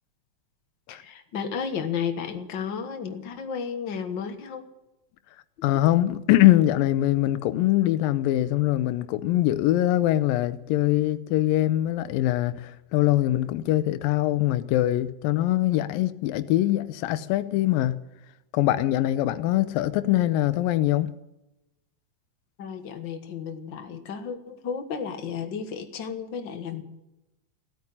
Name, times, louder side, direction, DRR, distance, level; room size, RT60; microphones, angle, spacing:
voice 1, 0.9-4.7 22.6-26.8, left 6 dB, 50° left, 1.4 m, -33 dB
voice 2, 5.6-18.0 18.5-21.1, left 14 dB, 90° left, 2.5 m, -23 dB
16.5 x 9.0 x 9.7 m
omnidirectional pair, 3.9 m